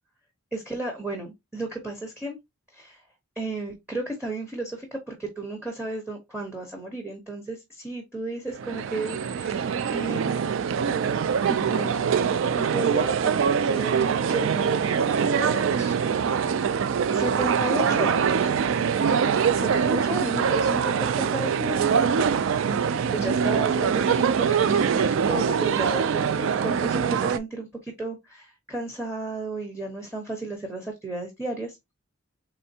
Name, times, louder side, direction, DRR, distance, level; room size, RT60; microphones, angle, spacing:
voice 1, 0.5-2.4 2.7-3.0 3.4-10.7 11.5-12.0 12.5-14.8 15.1-16.0 17.1-18.5 19.2-21.9 22.1-31.8, right 2 dB, 5° right, 0.8 m, -33 dB
sound 1, 8.5-27.4, right 6 dB, 60° right, 0.3 m, -23 dB
4.3 x 3.3 x 2.7 m
head